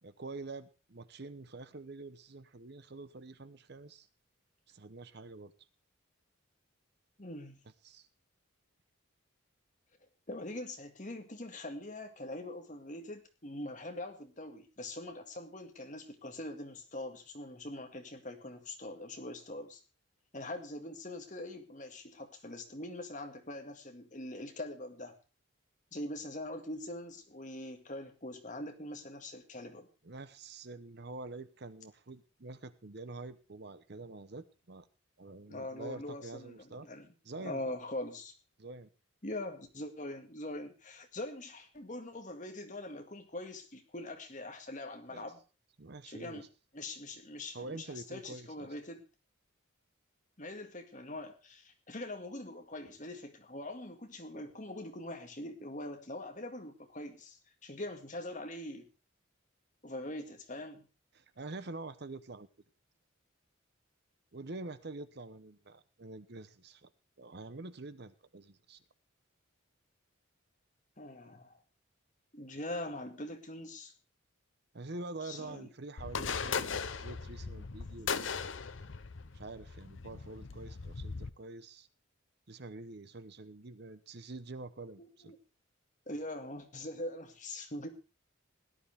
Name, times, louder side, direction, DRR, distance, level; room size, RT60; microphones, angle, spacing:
voice 1, 0.0-4.1 4.7-5.5 7.8-8.1 30.0-34.9 35.2-36.9 37.2-37.7 38.6-38.9 45.1-45.3 45.8-46.5 47.5-48.7 61.1-62.5 64.3-66.9 67.2-68.8 74.7-78.3 79.3-81.9 82.5-85.3, right 2 dB, 55° right, 13 dB, 0.9 m, -46 dB
voice 2, 7.2-7.6 10.3-19.8 20.3-25.1 25.9-29.9 35.5-37.1 37.4-38.3 39.2-45.4 46.1-46.5 46.7-49.0 50.4-58.9 59.8-60.9 71.0-71.6 72.3-73.9 75.2-75.7 85.0-85.4 86.1-87.9, left 1 dB, 35° left, 5 dB, 2.0 m, -43 dB
sound 1, 76.0-81.3, left 5 dB, 65° left, 0.8 m, -38 dB
17.0 x 11.5 x 3.5 m, 0.32 s
head